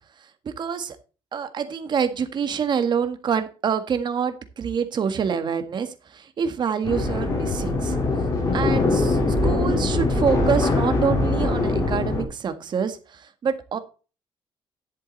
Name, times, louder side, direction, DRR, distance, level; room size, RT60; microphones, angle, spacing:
voice 1, 0.4-1.0 1.3-8.0 8.5-13.8, right 7 dB, 45° right, 9 dB, 1.6 m, -26 dB
sound 1, 6.8-12.2, left 2 dB, 35° left, 3.9 m, -22 dB
11.0 x 7.7 x 4.1 m, 0.34 s
cardioid pair, 125°, 10 cm